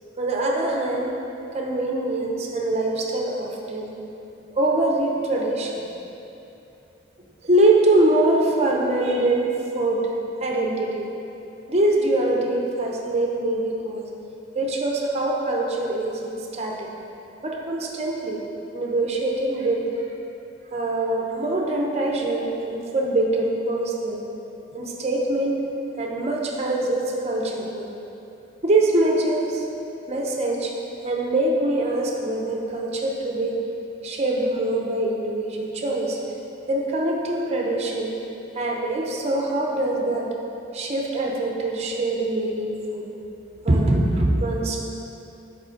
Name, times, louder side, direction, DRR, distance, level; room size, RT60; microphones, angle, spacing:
voice 1, 0.2-1.1 1.5-3.9 4.5-5.8 7.4-10.1 10.4-11.0 11.7-14.1 14.5-16.9 17.4-18.4 18.7-19.9 20.7-24.2 24.7-25.6 26.0-27.9 28.6-29.6 30.1-30.7 31.0-33.6 34.0-36.2 36.7-38.1 38.5-40.3 40.7-43.1 43.6-44.8, right 2 dB, 35° right, 0 dB, 0.6 m, -23 dB
5.0 x 4.2 x 5.1 m, 2.8 s
head